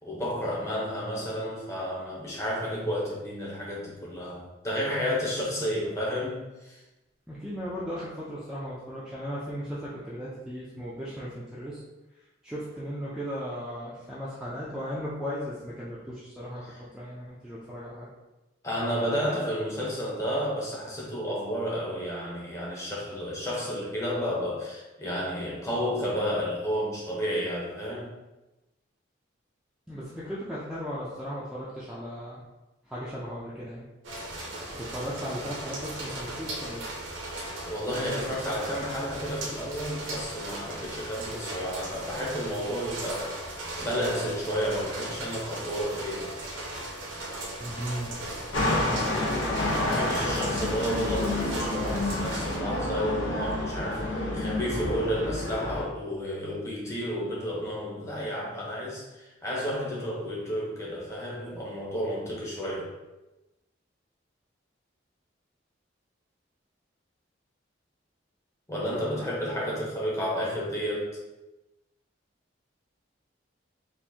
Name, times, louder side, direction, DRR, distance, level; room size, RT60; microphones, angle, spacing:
voice 1, 0.0-6.8 16.6-16.8 18.6-28.1 37.6-43.4 43.8-46.3 48.8-62.9 68.7-71.2, equal, 15° left, -5 dB, 0.8 m, -31 dB
voice 2, 7.3-11.8 12.4-18.1 29.9-32.5 32.9-33.9 34.7-36.8 47.6-48.1 48.7-49.3, equal, 5° right, -9 dB, 0.4 m, -36 dB
sound 1, 34.0-52.6, right 1 dB, 85° right, 0.8 m, -37 dB
sound 2, 48.5-55.8, left 1 dB, 80° left, 0.7 m, -29 dB
4.3 x 2.5 x 2.7 m, 1.0 s
head